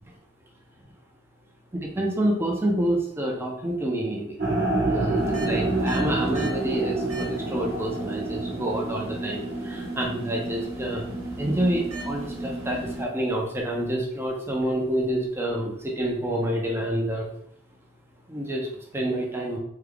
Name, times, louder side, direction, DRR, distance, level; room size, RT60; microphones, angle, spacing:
voice 1, 1.7-4.3 4.8-5.2 5.5-6.9 7.5-9.4 9.7-11.0 11.4-17.3 18.3-18.7 18.9-19.6, right 1 dB, 10° right, -1 dB, 0.5 m, -27 dB
sound 1, 4.4-10.5, right 2 dB, 50° right, 1.0 m, -28 dB
sound 2, 5.1-13.0, right 2 dB, 85° right, 0.9 m, -34 dB
3.4 x 2.3 x 3.4 m, 0.67 s
head